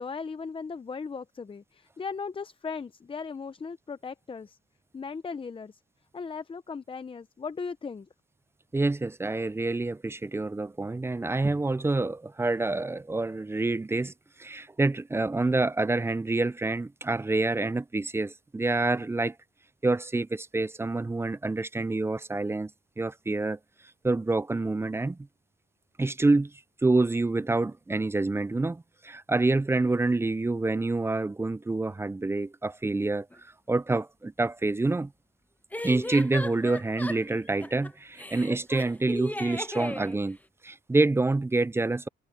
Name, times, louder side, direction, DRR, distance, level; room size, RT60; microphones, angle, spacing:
voice 1, 0.0-4.6 4.9-5.8 6.1-8.1, left 5 dB, 25° left, 0.8 m, -37 dB
voice 2, 8.7-14.1 14.4-19.3 19.8-22.7 23.0-23.6 24.0-25.2 26.0-26.5 26.8-33.3 33.7-35.1 35.8-40.4 40.6-42.1, right 2 dB, 10° right, 0.4 m, -27 dB
sound 1, 33.3-33.4 35.7-37.9 38.2-40.2, left 1 dB, 10° left, 1.0 m, -36 dB
cardioid pair, 90°, 20 cm